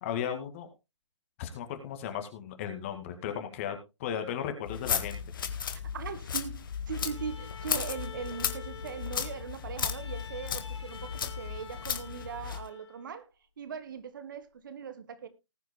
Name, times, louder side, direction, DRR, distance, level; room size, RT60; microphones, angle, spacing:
voice 1, 0.0-0.7 1.4-5.2, left 9 dB, 25° left, 2.0 m, -35 dB
sound 1, 4.6-12.7, left 7 dB, 45° left, 1.6 m, -35 dB
voice 2, 5.9-13.3 13.6-15.3, right 7 dB, 45° right, 1.6 m, -40 dB
Bowed string instrument, 6.9-13.2, left 6 dB, 65° left, 2.3 m, -48 dB
19.5 x 9.2 x 2.2 m
figure-of-eight pair, 145°, 15 cm